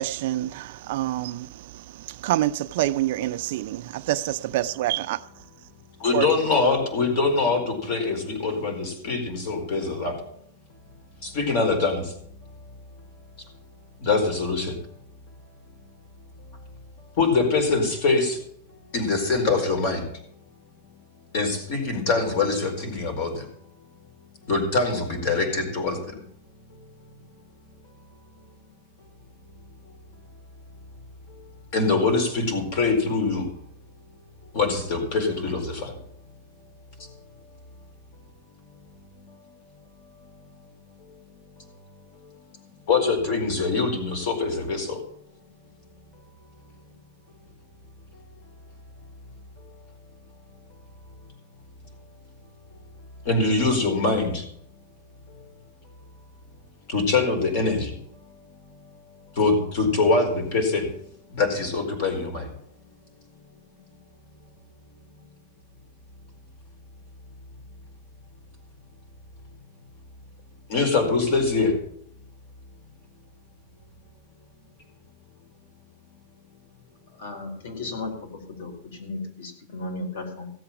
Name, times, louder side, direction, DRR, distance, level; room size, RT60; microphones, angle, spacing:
voice 1, 0.0-5.2 6.1-6.3, right 14 dB, 50° right, 0.6 m, -27 dB
voice 2, 6.0-10.2 11.2-12.1 12.4-12.5 14.0-14.8 16.4-16.5 17.1-18.4 18.8-20.1 21.3-23.5 24.4-26.2 26.7-26.8 31.7-33.5 34.5-35.9 37.0-37.1 38.6-38.8 39.1-39.4 40.0-40.3 41.1-41.2 41.6-41.7 42.1-45.1 48.1-48.2 53.2-54.4 55.3-55.4 56.9-60.9 61.3-62.5 70.7-71.8, left 3 dB, 40° left, 4.4 m, -24 dB
voice 3, 77.2-78.7 79.0-80.5, left 2 dB, 75° left, 4.8 m, -35 dB
17.0 x 7.7 x 7.2 m
supercardioid pair, 180°, 0 cm